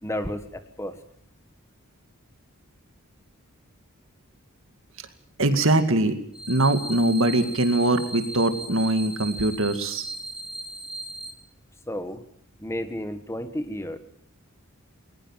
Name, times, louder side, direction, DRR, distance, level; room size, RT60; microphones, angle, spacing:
voice 1, 0.0-1.0 11.9-12.2 12.6-14.0, left 1 dB, 10° left, 10 dB, 1.4 m, -32 dB
voice 2, 5.4-6.2 6.5-10.1, right 2 dB, 60° right, 9 dB, 2.2 m, -22 dB
sound 1, 6.3-11.3, right 2 dB, 5° right, 2.4 m, -37 dB
20.5 x 20.0 x 7.4 m, 0.65 s
head